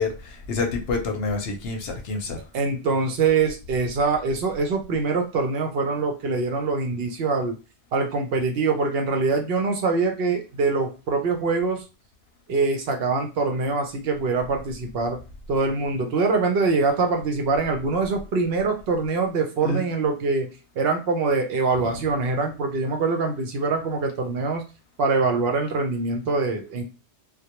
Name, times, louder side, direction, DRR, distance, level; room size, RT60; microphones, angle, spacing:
voice 1, 0.0-2.4 19.6-19.8 21.9-22.0, left 3 dB, 65° left, 0.7 m, -27 dB
voice 2, 2.5-7.6 7.9-11.8 12.5-15.2 15.5-20.5 20.8-24.6 25.0-26.8, right 4 dB, 65° right, 0.7 m, -24 dB
2.2 x 2.1 x 2.8 m
omnidirectional pair, 1.2 m